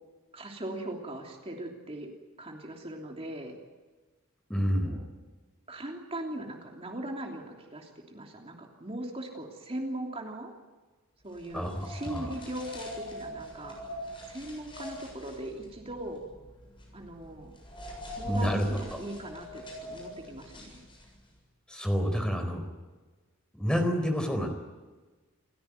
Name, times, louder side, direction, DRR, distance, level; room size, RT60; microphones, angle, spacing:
voice 1, 0.3-2.1 2.4-3.6 4.8-5.0 5.7-10.5 11.2-13.8 14.3-16.2 16.9-17.5 18.1-20.8, right 1 dB, 25° right, 1 dB, 3.1 m, -39 dB
voice 2, 4.5-5.0 11.5-12.3 18.2-19.0 21.7-22.6 23.5-24.5, equal, 5° left, 5 dB, 4.3 m, -29 dB
sound 1, 11.3-21.3, left 1 dB, 25° left, 7.3 m, -43 dB
29.0 x 16.5 x 9.6 m, 1.3 s
head